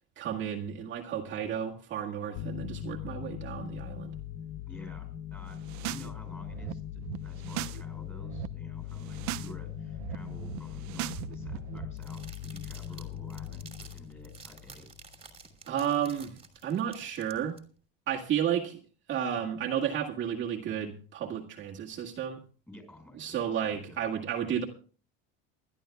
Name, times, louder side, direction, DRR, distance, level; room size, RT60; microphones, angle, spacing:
voice 1, 0.2-4.1 15.7-16.4 16.6-17.6 18.1-18.8 19.1-22.4 23.2-24.6, right 9 dB, 40° right, -1 dB, 1.9 m, -32 dB
sound 1, 2.4-15.5, left 10 dB, 40° left, 0.9 m, -40 dB
voice 2, 4.7-14.9 22.7-24.0, left 1 dB, 5° left, 4 dB, 5.7 m, -50 dB
sound 2, 5.5-6.1 6.4-7.8 8.1-8.5 8.9-9.5 9.8-11.9, right 15 dB, 70° right, 0.9 m, -39 dB
sound 3, 12.0-17.6, right 5 dB, 20° right, 2.8 m, -52 dB
28.5 x 12.0 x 2.3 m, 0.38 s
cardioid pair, 155°, 30 cm